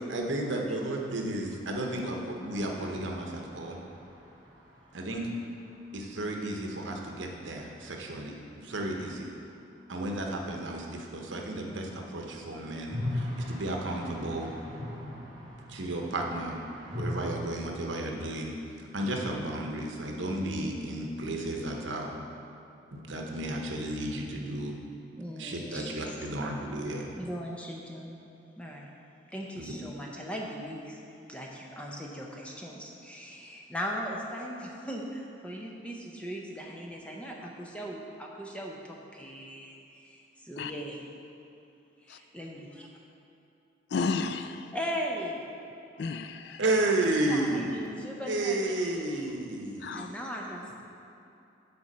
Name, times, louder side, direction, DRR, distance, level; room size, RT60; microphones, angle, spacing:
voice 1, 0.1-3.8 4.9-5.2 5.9-9.3 9.9-14.5 15.7-16.6 16.9-18.6 18.9-22.2 22.9-24.8 25.4-27.1 29.6-29.7 46.6-47.7 48.3-49.9, right 1 dB, 80° right, 1 dB, 0.9 m, -32 dB
sound 1, 2.5-6.3 6.5-6.6 6.8-6.9 11.9-17.1, left 1 dB, 20° right, 1.3 m, -40 dB
voice 2, 25.2-26.2 27.2-28.2 28.6-28.9 29.3-31.0 31.3-41.0 42.0-42.9 44.7-45.4 47.2-49.3 49.9-50.8, equal, 5° left, -2 dB, 0.7 m, -39 dB
voice 3, 43.9-44.7 46.0-46.6 49.8-50.1, left 4 dB, 60° left, 9 dB, 0.3 m, -32 dB
6.9 x 4.3 x 6.5 m, 2.8 s
head